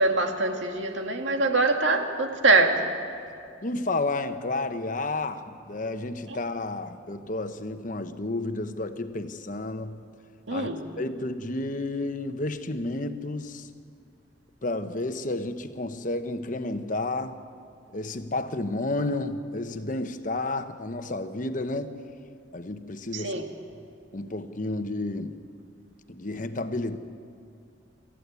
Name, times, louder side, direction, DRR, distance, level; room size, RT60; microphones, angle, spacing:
voice 1, 0.0-2.8 10.5-10.8 23.1-23.4, right 3 dB, 90° right, 4 dB, 2.0 m, -23 dB
voice 2, 3.6-10.0 10.5-10.7 11.0-13.7 14.6-17.4 17.9-22.0 22.5-23.4 24.1-25.4 26.1-27.0, left 2 dB, 45° left, 9 dB, 1.0 m, -31 dB
26.0 x 14.0 x 8.3 m, 2.4 s
head